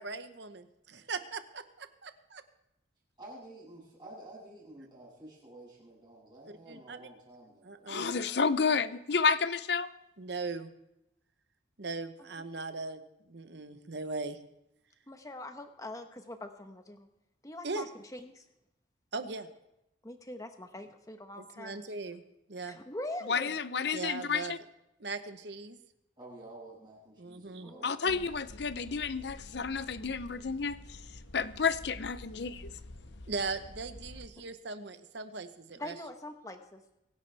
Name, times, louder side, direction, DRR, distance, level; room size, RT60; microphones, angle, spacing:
voice 1, 0.0-2.4 6.5-7.1 7.6-8.1 10.2-10.7 11.8-14.4 17.6-17.8 19.1-19.5 21.4-22.2 22.5-22.8 23.9-24.5 25.0-25.8 27.2-27.8 33.3-36.0, right 3 dB, 65° right, 10 dB, 1.0 m, -39 dB
voice 2, 3.2-8.4 26.2-27.9, right 1 dB, 25° right, -5 dB, 7.1 m, -51 dB
voice 3, 7.9-9.9 23.3-24.6 27.8-30.8 31.3-32.7, left 5 dB, 60° left, 14 dB, 0.6 m, -30 dB
voice 4, 15.1-17.1 17.4-17.9 18.1-18.4 20.0-21.8 22.6-23.6 27.6-28.3 35.8-36.8, left 1 dB, 15° left, 6 dB, 1.0 m, -43 dB
sound 1, 28.1-34.3, left 1 dB, 75° left, 1.2 m, -49 dB
24.0 x 11.0 x 3.4 m, 0.86 s
head